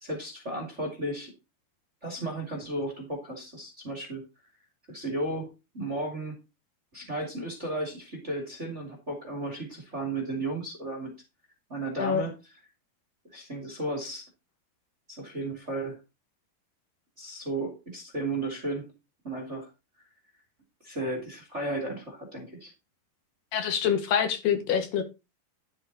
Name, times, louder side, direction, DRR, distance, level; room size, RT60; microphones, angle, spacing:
voice 1, 0.0-1.3 2.0-4.2 4.9-6.4 6.9-11.1 11.7-12.3 13.3-14.2 15.1-16.0 17.2-18.9 19.2-19.7 20.8-22.7, right 2 dB, 20° right, 3 dB, 2.3 m, -34 dB
voice 2, 23.5-25.0, left 8 dB, 70° left, 7 dB, 3.6 m, -26 dB
11.5 x 7.6 x 4.0 m, 0.26 s
omnidirectional pair, 4.9 m